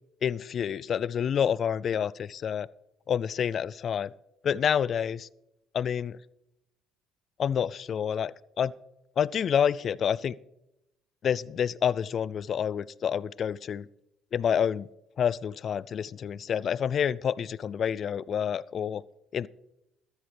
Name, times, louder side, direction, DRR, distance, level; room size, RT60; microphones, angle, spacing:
voice 1, 0.2-2.7 3.1-4.1 4.4-5.3 5.7-6.2 7.4-8.7 9.2-10.4 11.2-13.9 14.3-14.9 15.2-19.0 19.3-19.5, left 8 dB, 50° left, 22 dB, 0.3 m, -28 dB
13.5 x 12.5 x 3.4 m, 0.87 s
hypercardioid pair, 65°, 0 cm